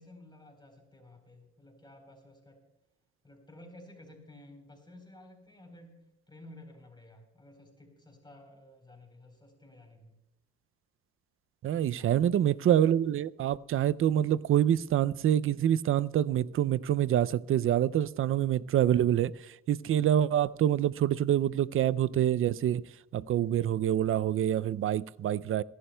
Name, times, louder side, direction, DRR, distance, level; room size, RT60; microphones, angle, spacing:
voice 1, 0.0-2.6 3.2-10.2 11.7-12.2, left 1 dB, 15° left, 3.9 m, -53 dB
voice 2, 11.6-22.8 23.1-25.6, right 11 dB, 45° right, 0.4 m, -26 dB
28.5 x 11.5 x 2.2 m
cardioid pair, 90°, 30 cm